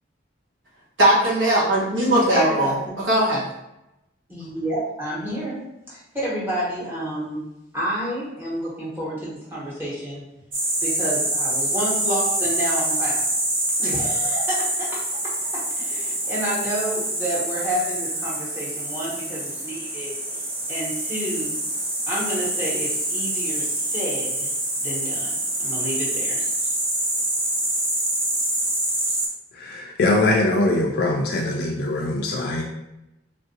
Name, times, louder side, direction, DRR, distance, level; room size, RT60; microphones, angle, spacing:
voice 1, 1.0-3.4, right 1 dB, 70° right, -6 dB, 1.2 m, -19 dB
voice 2, 2.3-3.0 4.3-7.4 7.7-10.2 10.8-13.3 13.8-15.0 15.5-20.1 20.7-21.6 22.1-24.5 24.8-26.4, right 1 dB, 10° right, -7 dB, 1.1 m, -30 dB
sound 1, 10.5-29.3, right 1 dB, 30° right, 0.7 m, -26 dB
voice 3, 29.5-32.6, left 2 dB, 50° left, 0 dB, 0.3 m, -22 dB
3.6 x 2.5 x 2.7 m, 0.90 s
head